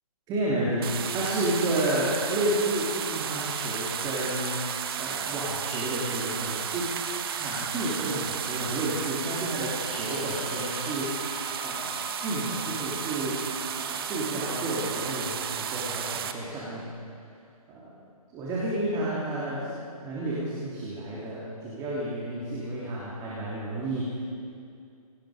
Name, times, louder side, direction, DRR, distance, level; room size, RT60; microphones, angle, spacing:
voice 1, 0.3-4.6 5.0-6.9 7.3-11.2 11.6-13.4 13.8-16.9 17.7-17.9 18.3-24.2, right 1 dB, 20° right, -7 dB, 3.4 m, -31 dB
sound 1, 0.8-16.3, right 8 dB, 40° right, 1.4 m, -33 dB
sound 2, 3.8-11.0, left 4 dB, 70° left, 2.4 m, -45 dB
sound 3, 8.9-15.1, left 7 dB, 25° left, 3.2 m, -47 dB
28.0 x 18.5 x 5.1 m, 2.4 s
figure-of-eight pair, 140°, 19 cm